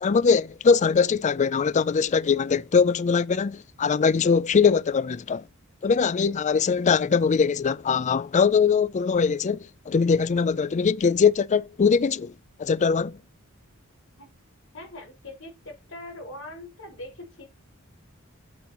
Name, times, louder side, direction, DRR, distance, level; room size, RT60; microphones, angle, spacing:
voice 1, 0.0-5.4 5.8-9.6 9.9-12.3 12.6-13.2, left 5 dB, 35° left, 0.4 m, -21 dB
voice 2, 14.7-17.5, left 1 dB, 65° left, 5.0 m, -41 dB
8.4 x 7.5 x 3.0 m
head